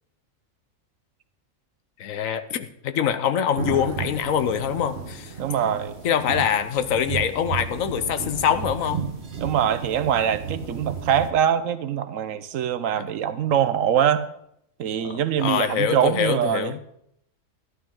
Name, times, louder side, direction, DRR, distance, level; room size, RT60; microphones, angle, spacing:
voice 1, 2.0-5.3 5.6-5.7 6.0-9.0 12.9-13.1 15.0-16.8, left 9 dB, 85° left, 12 dB, 1.2 m, -24 dB
sound 1, 3.6-11.3, right 6 dB, 55° right, 1.5 m, -33 dB
voice 2, 5.4-6.0 9.4-14.2 14.8-16.7, right 9 dB, 80° right, 13 dB, 1.1 m, -23 dB
12.5 x 11.5 x 3.8 m, 0.76 s
omnidirectional pair, 1.4 m